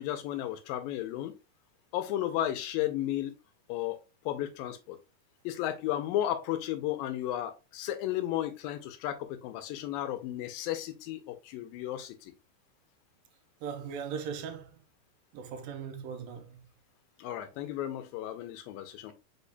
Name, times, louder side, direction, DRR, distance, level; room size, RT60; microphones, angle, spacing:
voice 1, 0.0-1.3 1.9-3.3 3.7-4.0 4.3-5.0 5.4-12.3 17.2-19.1, left 12 dB, 85° left, 2.4 m, -34 dB
voice 2, 13.6-14.7 15.3-16.5, right 6 dB, 85° right, 2.4 m, -38 dB
5.5 x 4.0 x 2.2 m
omnidirectional pair, 4.1 m